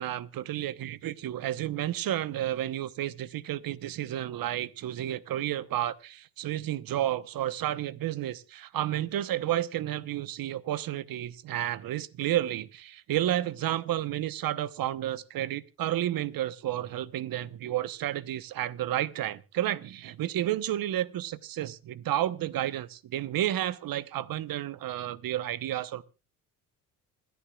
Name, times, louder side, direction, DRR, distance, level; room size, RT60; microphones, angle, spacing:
voice 1, 0.0-26.0, right 12 dB, 50° right, 1.0 m, -31 dB
27.0 x 10.5 x 2.4 m
hypercardioid pair, 60°, 43 cm